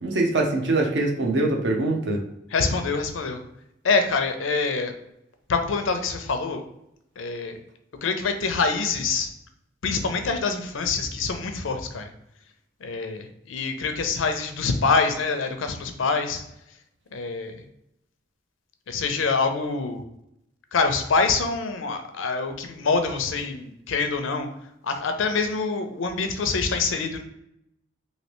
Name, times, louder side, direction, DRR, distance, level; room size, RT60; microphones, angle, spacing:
voice 1, 0.0-2.2, right 2 dB, 65° right, 1 dB, 0.6 m, -23 dB
voice 2, 2.5-3.4 3.8-4.9 5.5-6.6 7.2-7.6 8.0-9.3 9.8-12.1 12.8-16.4 17.1-17.6 18.9-20.0 20.7-24.5 24.8-27.2, left 4 dB, 90° left, 7 dB, 0.5 m, -25 dB
3.1 x 2.8 x 3.0 m, 0.80 s
head